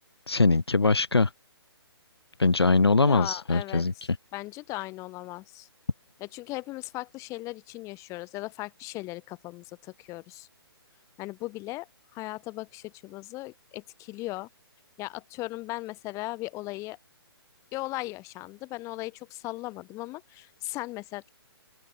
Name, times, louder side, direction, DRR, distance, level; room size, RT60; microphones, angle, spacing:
voice 1, 0.3-1.3 2.4-3.9, left 3 dB, 85° left, 1.0 m, -22 dB
voice 2, 3.0-3.8 4.3-5.7 6.2-10.5 11.2-14.5 15.0-17.0 17.7-21.3, left 20 dB, 25° left, 4.7 m, -37 dB
open air
figure-of-eight pair, 130°, 13 cm